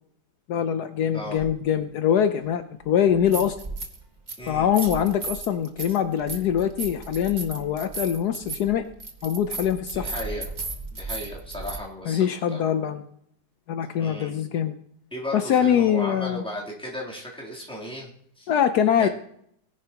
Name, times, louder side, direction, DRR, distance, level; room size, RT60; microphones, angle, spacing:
voice 1, 0.5-3.5 4.5-8.8 9.2-10.1 12.1-13.0 13.7-14.7 15.3-16.4 18.5-19.1, left 9 dB, 75° left, 8 dB, 1.2 m, -23 dB
voice 2, 1.1-1.4 4.4-4.7 10.0-10.5 10.9-12.7 13.9-14.3 15.1-18.1 18.4-18.5 19.0-19.1, left 1 dB, 5° left, -5 dB, 3.1 m, -35 dB
sound 1, 1.4-1.5 3.1-4.0 4.3-11.8, right 3 dB, 30° right, 1.4 m, -35 dB
19.0 x 10.5 x 2.9 m, 0.69 s
omnidirectional pair, 1.8 m